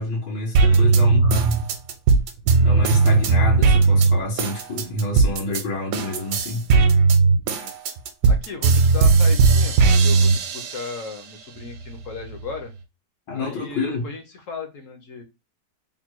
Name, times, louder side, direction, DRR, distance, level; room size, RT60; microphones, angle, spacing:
voice 1, 0.0-1.6 2.6-6.7 13.3-14.0, left 2 dB, 85° left, 1.6 m, -27 dB
sound 1, 0.5-5.6 5.9-11.1 11.6-12.5, right 4 dB, 75° right, 1.2 m, -17 dB
voice 2, 0.7-1.2 7.5-7.7 8.3-12.7 13.3-15.2, left 4 dB, 60° left, 1.0 m, -36 dB
3.5 x 2.2 x 4.4 m
omnidirectional pair, 1.8 m